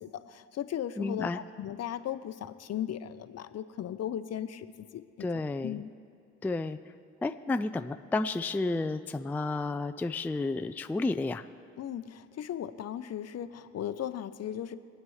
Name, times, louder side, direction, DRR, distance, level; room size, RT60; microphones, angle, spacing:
voice 1, 0.0-5.3 5.6-5.9 11.8-14.8, left 10 dB, 55° left, 12 dB, 0.7 m, -37 dB
voice 2, 1.0-1.4 5.2-5.8 6.4-6.8 7.2-11.4, left 3 dB, 5° left, 9 dB, 0.3 m, -31 dB
24.0 x 9.0 x 3.2 m, 2.3 s
cardioid pair, 90°, 30 cm